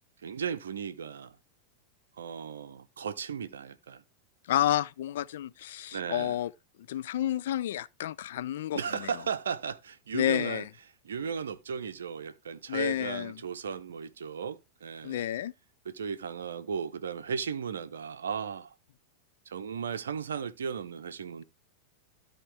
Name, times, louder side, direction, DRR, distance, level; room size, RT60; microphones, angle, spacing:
voice 1, 0.2-1.4 2.2-4.0 5.9-6.4 8.7-10.6 11.0-15.2 15.8-18.7 19.5-21.4, right 6 dB, 65° right, 0.6 m, -36 dB
voice 2, 4.5-6.5 6.9-8.8 10.1-10.7 12.7-13.4 15.0-15.5, left 12 dB, 55° left, 0.4 m, -30 dB
12.5 x 4.4 x 3.2 m
figure-of-eight pair, 90°, 0 cm